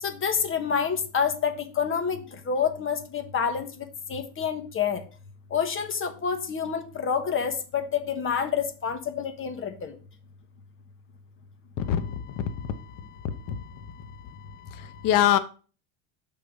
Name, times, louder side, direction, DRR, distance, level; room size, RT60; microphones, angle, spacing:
voice 1, 0.0-3.7 4.1-5.0 5.5-9.9, left 7 dB, 25° left, 9 dB, 1.1 m, -28 dB
voice 2, 11.8-12.7 13.5-13.7 14.7-15.4, left 10 dB, 45° left, 11 dB, 0.8 m, -25 dB
6.3 x 4.1 x 5.2 m, 0.37 s
supercardioid pair, 115°, 46 cm